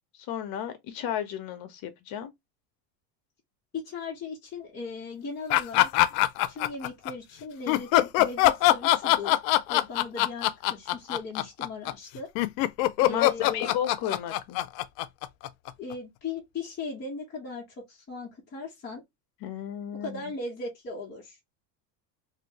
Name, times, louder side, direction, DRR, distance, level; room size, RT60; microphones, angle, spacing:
voice 1, 0.3-2.3 13.1-14.7 19.4-20.2, left 10 dB, 45° left, 1.0 m, -33 dB
voice 2, 3.7-5.9 6.5-9.4 9.7-12.3 13.0-13.7 15.8-19.0 20.0-21.4, left 3 dB, 20° left, 1.1 m, -38 dB
sound 1, 5.5-7.1 7.7-15.9, left 15 dB, 85° left, 0.6 m, -23 dB
3.0 x 2.7 x 2.9 m
supercardioid pair, 140°, 49 cm